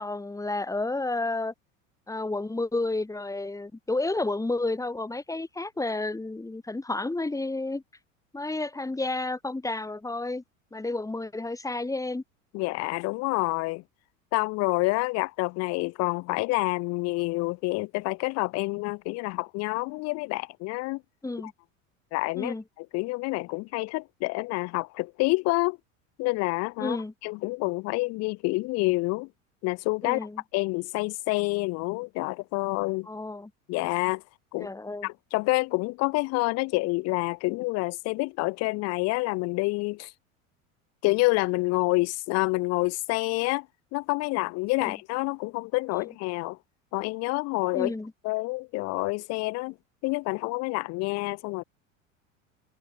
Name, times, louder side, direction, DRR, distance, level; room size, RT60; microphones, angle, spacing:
voice 1, 0.0-1.5 2.1-7.8 8.3-10.4 10.7-12.2 21.2-21.5 22.4-22.6 26.8-27.1 30.0-30.4 33.1-33.5 34.6-35.1 44.8-44.9 47.7-48.1, left 2 dB, 10° left, 2.6 m, -31 dB
voice 2, 12.5-13.8 14.3-21.0 22.1-25.8 26.2-27.0 27.2-29.3 29.6-33.1 33.7-34.2 34.5-34.7 35.0-40.1 41.0-43.7 43.9-46.6 46.9-47.9 48.2-49.7 50.0-51.6, left 24 dB, 40° left, 0.5 m, -28 dB
hypercardioid pair, 80°, 39 cm